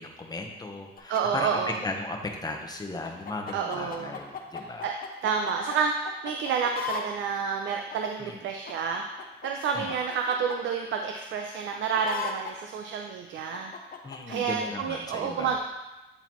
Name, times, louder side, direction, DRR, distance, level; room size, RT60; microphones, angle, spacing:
voice 1, 0.0-4.9 8.2-8.4 9.7-9.9 14.0-15.6, left 2 dB, 20° left, 2 dB, 0.9 m, -36 dB
sound 1, 1.0-1.2 3.0-5.8 6.0-7.0 7.9-8.0 8.7-10.6 11.7-12.5 13.5-14.4, left 6 dB, 45° left, 0.7 m, -37 dB
voice 2, 1.1-1.8 3.5-4.1 4.8-4.9 5.2-9.0 9.4-13.7 14.3-15.6, right 6 dB, 75° right, 3 dB, 0.5 m, -29 dB
8.8 x 3.9 x 3.0 m, 1.1 s
cardioid pair, 90°, 20 cm